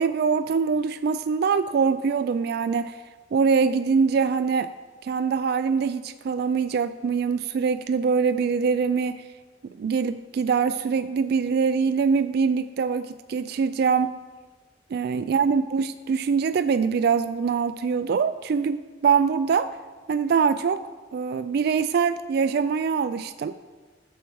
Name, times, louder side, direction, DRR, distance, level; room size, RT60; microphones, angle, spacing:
voice 1, 0.0-3.0 3.3-4.7 5.0-9.2 9.8-14.2 14.9-19.7 20.1-20.8 21.1-23.5, right 5 dB, 55° right, 11 dB, 0.3 m, -23 dB
12.5 x 7.3 x 4.6 m, 1.4 s
head